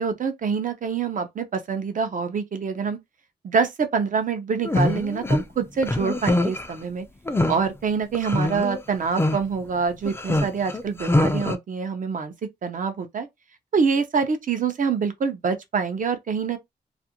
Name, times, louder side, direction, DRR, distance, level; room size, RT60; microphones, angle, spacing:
voice 1, 0.0-3.0 3.4-7.1 7.5-12.3 12.6-13.3 13.7-16.6, right 5 dB, 50° right, 0.6 m, -25 dB
sound 1, 4.6-5.4 5.8-6.7 7.3-7.6 8.1-8.8 9.2-9.4 10.1-11.6, left 2 dB, 15° left, 0.4 m, -23 dB
2.5 x 2.1 x 2.8 m
cardioid pair, 60°, 17 cm